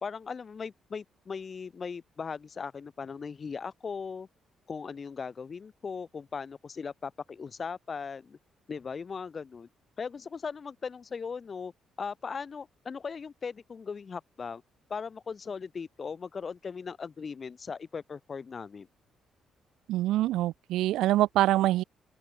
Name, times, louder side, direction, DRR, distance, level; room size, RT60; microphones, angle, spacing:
voice 1, 0.0-4.3 4.7-8.4 8.7-9.7 10.0-11.7 12.0-14.6 14.9-18.9, left 5 dB, 40° left, 1.9 m, -38 dB
voice 2, 19.9-21.8, right 15 dB, 90° right, 0.5 m, -25 dB
open air
cardioid pair, 90°, 0 cm